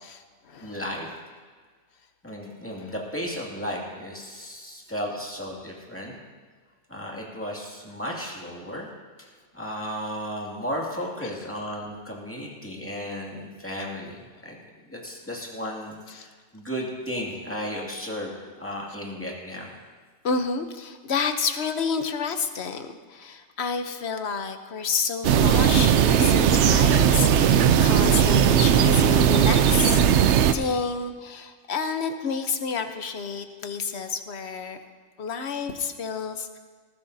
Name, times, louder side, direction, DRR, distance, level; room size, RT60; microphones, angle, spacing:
voice 1, 0.0-0.8 2.8-2.9 11.2-11.3 16.1-16.3 20.2-30.0 30.5-34.8 35.2-36.6, left 5 dB, 65° left, 7 dB, 1.1 m, -30 dB
voice 2, 0.6-1.1 2.2-6.2 6.9-8.9 9.5-14.2 14.4-14.6 14.9-19.7, equal, 10° left, -3 dB, 2.3 m, -34 dB
sound 1, 25.2-30.5, right 9 dB, 75° right, 0.9 m, -18 dB
20.0 x 14.5 x 2.7 m, 1.5 s
omnidirectional pair, 1.2 m